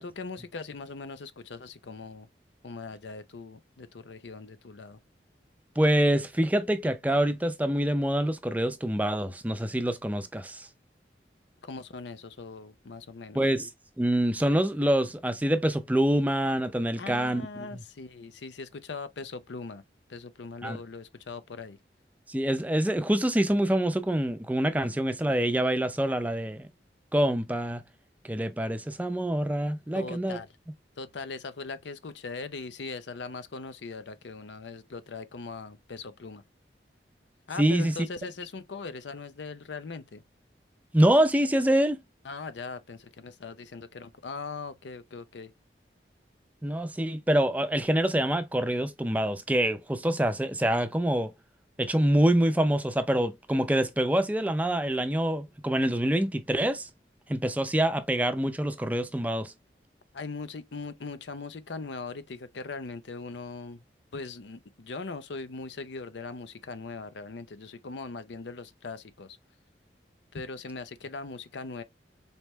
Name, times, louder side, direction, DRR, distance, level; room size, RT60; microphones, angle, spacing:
voice 1, 0.0-2.3 2.6-5.0 11.6-13.5 17.0-19.8 20.1-21.8 29.9-30.5 31.0-36.4 37.5-40.2 42.2-45.5 60.1-63.8 64.1-69.4 70.3-71.8, left 4 dB, 85° left, 0.6 m, -40 dB
voice 2, 5.8-10.7 13.3-13.7 14.0-17.5 20.6-20.8 22.3-26.7 27.1-27.8 28.3-30.4 37.6-37.9 40.9-42.0 46.6-51.3 51.8-56.9 57.3-59.5, right 1 dB, 10° right, 0.4 m, -25 dB
4.1 x 3.3 x 3.0 m
head